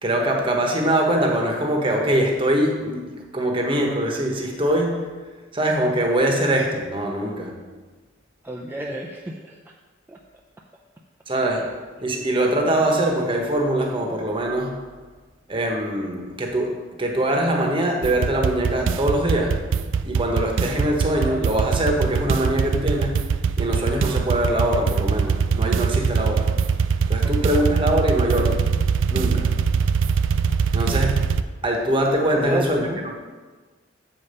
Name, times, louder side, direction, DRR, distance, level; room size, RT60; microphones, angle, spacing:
voice 1, 0.0-5.0 5.5-7.5 11.3-11.6 12.0-14.7 15.5-19.6 20.0-23.2 23.6-26.5 27.1-28.7 29.1-29.5 30.7-31.2 31.6-32.9, right 1 dB, 25° right, 1 dB, 1.1 m, -23 dB
voice 2, 8.4-9.6 10.1-10.2 27.2-27.6 32.3-33.0, right 1 dB, 10° right, -2 dB, 0.4 m, -31 dB
sound 1, 18.0-31.4, right 6 dB, 85° right, 0.4 m, -22 dB
7.0 x 5.1 x 5.4 m, 1.4 s
head